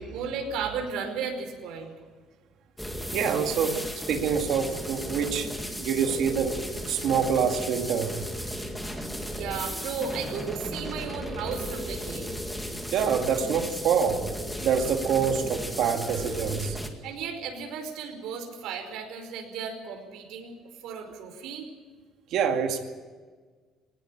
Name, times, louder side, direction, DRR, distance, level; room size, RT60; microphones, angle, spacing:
voice 1, 0.0-1.9 9.3-12.3 17.0-20.6 20.8-21.6, right 6 dB, 75° right, 4 dB, 5.0 m, -34 dB
sound 1, 2.8-16.9, equal, ahead, 2.1 m, -35 dB
voice 2, 3.1-5.5 5.8-6.6 6.9-8.2 12.9-14.2 14.6-16.8 22.3-22.8, right 7 dB, 60° right, 4 dB, 2.3 m, -26 dB
20.5 x 19.0 x 8.7 m, 1.4 s
cardioid pair, 165°, 0 cm